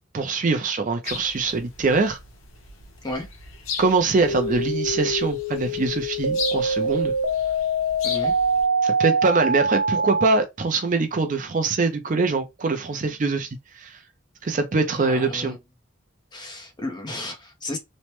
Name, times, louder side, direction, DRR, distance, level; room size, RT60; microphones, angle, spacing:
voice 1, 0.1-2.2 3.8-7.1 8.8-13.5 13.8-13.9 14.4-15.6, right 3 dB, 40° right, 0.4 m, -23 dB
sound 1, 1.0-8.6, left 5 dB, 80° left, 0.9 m, -37 dB
sound 2, 4.2-10.2, right 2 dB, 65° right, 0.7 m, -24 dB
voice 2, 15.0-15.6 16.3-17.8, left 2 dB, 20° left, 0.6 m, -33 dB
3.1 x 2.1 x 2.9 m
head